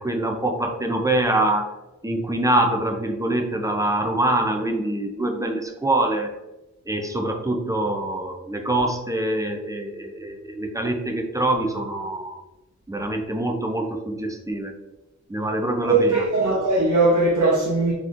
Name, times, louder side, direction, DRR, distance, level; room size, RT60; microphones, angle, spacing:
voice 1, 0.0-1.7 2.0-6.3 6.9-12.4 12.9-14.7 15.3-16.3, right 1 dB, 10° right, 2 dB, 0.5 m, -24 dB
voice 2, 15.8-17.9, right 2 dB, 80° right, -7 dB, 0.9 m, -19 dB
3.8 x 3.0 x 2.5 m, 1.0 s
cardioid pair, 50°, 30 cm